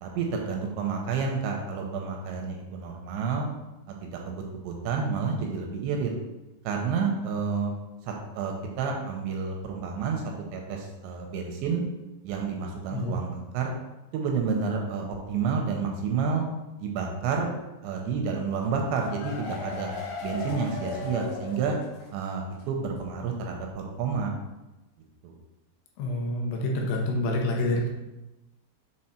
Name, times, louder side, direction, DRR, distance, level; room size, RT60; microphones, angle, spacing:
voice 1, 0.0-3.5 3.9-6.1 6.6-7.7 8.0-11.8 12.2-13.7 14.1-16.4 16.8-17.5 17.8-19.9 20.2-21.8 22.1-24.3 25.2-25.4, right 5 dB, 80° right, 1 dB, 2.8 m, -30 dB
sound 1, 18.6-22.2 22.5-22.6 23.0-23.1, left 4 dB, 60° left, 2.8 m, -37 dB
voice 2, 26.0-27.9, left 1 dB, 80° left, 0 dB, 3.3 m, -27 dB
7.7 x 3.9 x 4.3 m, 1.0 s
omnidirectional pair, 5.5 m